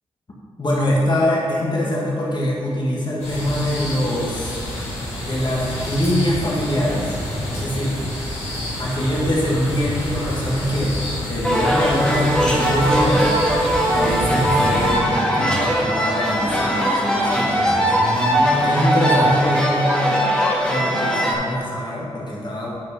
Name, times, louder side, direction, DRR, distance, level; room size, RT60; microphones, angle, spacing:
voice 1, 0.6-4.6 5.2-7.2 7.5-8.0 8.8-13.3 13.9-18.0 18.6-20.2 20.7-22.8, left 1 dB, 45° left, -5 dB, 1.8 m, -23 dB
sound 1, 3.2-14.9, equal, 85° left, 2.0 m, -28 dB
sound 2, 11.4-21.3, equal, 10° left, 1.5 m, -20 dB
sound 3, 14.0-16.7 17.1-20.0, right 1 dB, 40° right, 1.5 m, -29 dB
8.3 x 4.5 x 5.1 m, 2.4 s
supercardioid pair, 40°, 11 cm